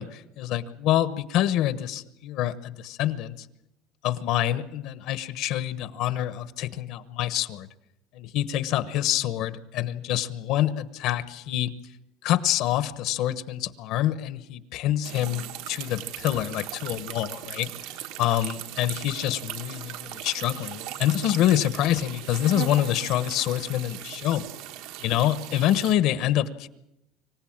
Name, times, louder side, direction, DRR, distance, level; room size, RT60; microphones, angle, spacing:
voice 1, 0.0-3.5 4.0-7.7 8.1-11.7 12.2-24.5 25.0-26.7, left 12 dB, 55° left, 14 dB, 1.1 m, -26 dB
sound 1, 15.0-25.9, right 12 dB, 65° right, 1.4 m, -38 dB
25.5 x 16.5 x 8.8 m, 0.84 s
cardioid pair, 160°, 0 cm